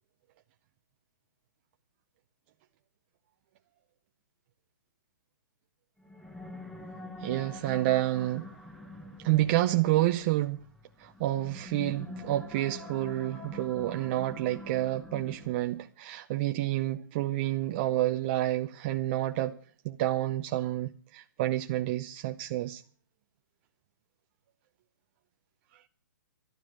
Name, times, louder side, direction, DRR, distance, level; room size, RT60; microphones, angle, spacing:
sound 1, 6.0-15.8, left 2 dB, ahead, 1.0 m, -45 dB
voice 1, 7.2-8.5 9.2-10.6 11.0-19.6 19.8-22.8, right 15 dB, 30° right, 0.7 m, -29 dB
12.5 x 12.0 x 6.4 m
hypercardioid pair, 155°, 11 cm